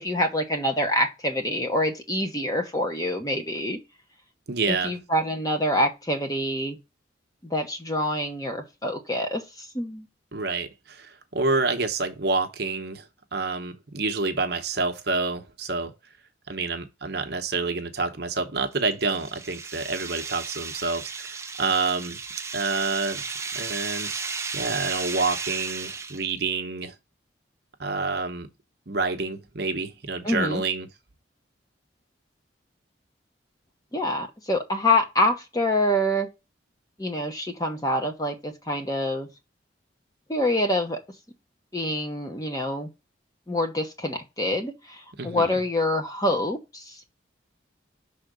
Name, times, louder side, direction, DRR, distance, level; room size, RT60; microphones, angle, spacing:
voice 1, 0.0-3.8 4.7-6.8 7.4-10.1 30.2-30.6 33.9-36.3 37.0-39.3 40.3-41.0 41.7-42.9 43.5-47.0, left 1 dB, 20° left, 1.0 m, -26 dB
voice 2, 4.5-4.9 10.3-13.0 13.3-15.9 16.5-22.2 22.5-23.2 23.5-26.9 27.8-28.5 28.9-30.9 45.2-45.6, right 3 dB, 60° right, 0.9 m, -28 dB
sound 1, 18.8-26.4, right 5 dB, 15° right, 0.4 m, -34 dB
5.7 x 3.6 x 5.1 m
head